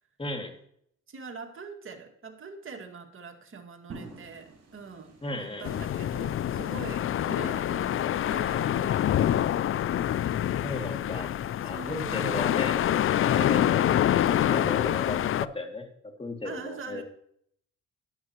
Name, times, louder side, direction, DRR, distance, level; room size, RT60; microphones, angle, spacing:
voice 1, 0.2-0.5 5.2-5.7 10.6-13.8 14.2-17.0, left 2 dB, 20° left, 3 dB, 2.3 m, -36 dB
voice 2, 1.1-9.1 11.6-12.5 16.4-17.0, right 4 dB, 45° right, 3 dB, 2.2 m, -43 dB
sound 1, 3.9-9.8, right 3 dB, 60° right, 5.1 m, -51 dB
sound 2, 5.6-15.5, left 11 dB, 45° left, 0.4 m, -26 dB
13.0 x 11.0 x 3.0 m, 0.67 s
cardioid pair, 90°, 30 cm